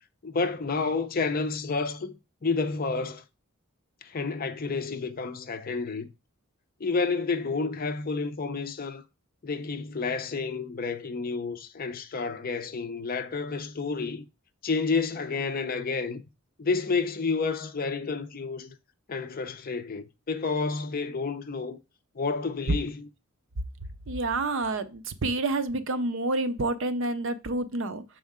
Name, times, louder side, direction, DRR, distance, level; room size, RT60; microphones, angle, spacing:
voice 1, 0.2-3.2 4.0-6.1 6.8-9.0 9.4-14.3 14.6-16.2 16.6-18.8 19.1-21.8 22.2-23.1, left 4 dB, 40° left, 0.5 m, -30 dB
voice 2, 24.1-28.0, right 2 dB, 60° right, 0.6 m, -28 dB
6.3 x 4.3 x 3.6 m
head